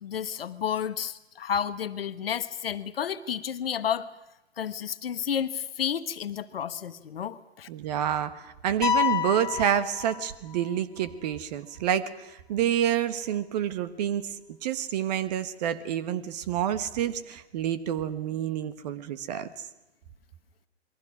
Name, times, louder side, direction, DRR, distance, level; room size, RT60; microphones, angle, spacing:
voice 1, 0.0-4.1 4.6-7.7, left 8 dB, 60° left, 12 dB, 1.2 m, -31 dB
voice 2, 7.7-14.3 14.6-19.5, right 10 dB, 40° right, 12 dB, 1.4 m, -28 dB
sound 1, 8.8-10.7, left 10 dB, 10° left, 2.5 m, -28 dB
28.0 x 22.0 x 6.3 m, 0.94 s
figure-of-eight pair, 120°, 33 cm